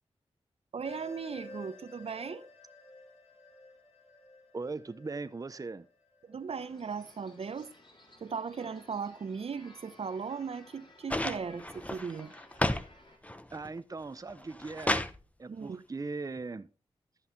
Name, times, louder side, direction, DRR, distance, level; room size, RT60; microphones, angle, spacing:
voice 1, 0.7-2.5 6.3-7.7 8.2-12.3 15.5-15.8, right 5 dB, 65° right, 0.7 m, -37 dB
sound 1, 0.8-6.5, left 2 dB, 75° left, 4.6 m, -52 dB
voice 2, 4.5-5.9 13.5-15.0 15.4-16.7, right 3 dB, 30° right, 0.6 m, -39 dB
sound 2, 6.5-13.2, left 1 dB, 45° left, 3.4 m, -57 dB
sound 3, 11.1-12.9 13.2-13.8 14.3-15.2 16.4-16.5, left 1 dB, 10° left, 0.8 m, -32 dB
13.0 x 5.4 x 4.0 m
cardioid pair, 45°, 11 cm